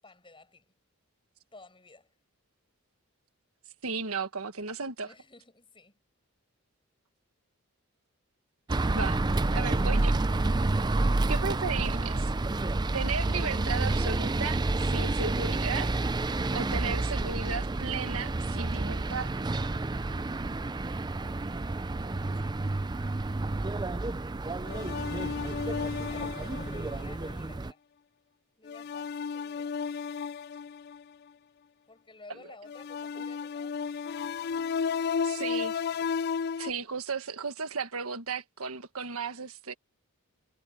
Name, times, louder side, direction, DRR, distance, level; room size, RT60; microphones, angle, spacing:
voice 1, 0.0-0.7 1.5-2.1 5.0-5.9 10.7-11.2 22.0-22.7 25.8-27.8 28.6-29.8 31.9-33.8, left 2 dB, 20° left, 7.6 m, -53 dB
voice 2, 3.8-5.1 8.9-9.2 9.5-10.2 11.3-12.3 12.9-15.9 16.5-19.3 35.2-35.8 36.6-39.7, right 5 dB, 75° right, 1.6 m, -35 dB
sound 1, 8.7-27.7, right 2 dB, 20° right, 0.4 m, -29 dB
sound 2, 24.6-27.1 28.7-31.0 32.7-36.7, left 6 dB, 45° left, 0.3 m, -33 dB
head